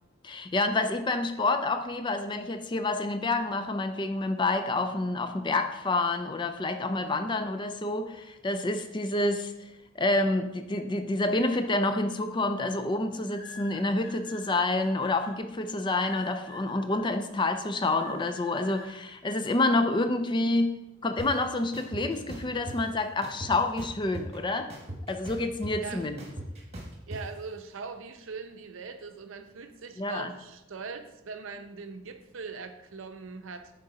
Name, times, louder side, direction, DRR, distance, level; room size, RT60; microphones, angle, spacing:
voice 1, 0.2-9.5 10.0-20.8 21.0-24.7 25.1-26.2 30.0-30.3, left 2 dB, 25° left, 8 dB, 0.4 m, -28 dB
sound 1, 13.3-15.3 16.0-17.0 17.8-18.9, left 3 dB, 70° left, 1.9 m, -47 dB
sound 2, 21.2-21.3 21.7-22.8 23.2-24.4 24.7-27.2, right 1 dB, 30° right, 1.2 m, -39 dB
voice 2, 27.1-33.7, right 4 dB, 70° right, 8 dB, 0.6 m, -41 dB
6.7 x 3.9 x 4.9 m, 0.92 s
head